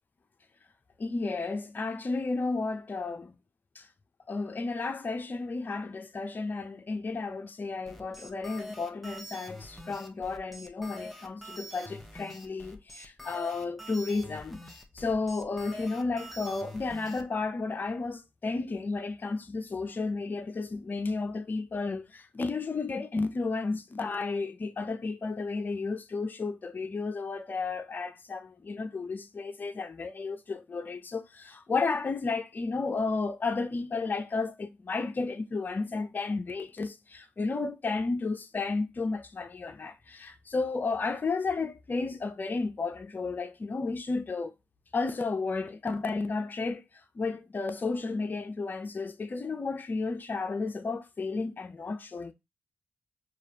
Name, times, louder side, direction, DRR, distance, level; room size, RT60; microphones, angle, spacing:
voice 1, 1.0-3.3 3.8-3.9 4.3-14.6 14.9-44.5 44.9-46.8 47.2-52.3, left 3 dB, 40° left, 0.6 m, -32 dB
sound 1, 7.9-17.2, equal, ahead, 1.1 m, -45 dB
4.8 x 2.4 x 2.8 m
hypercardioid pair, 40°, 5 cm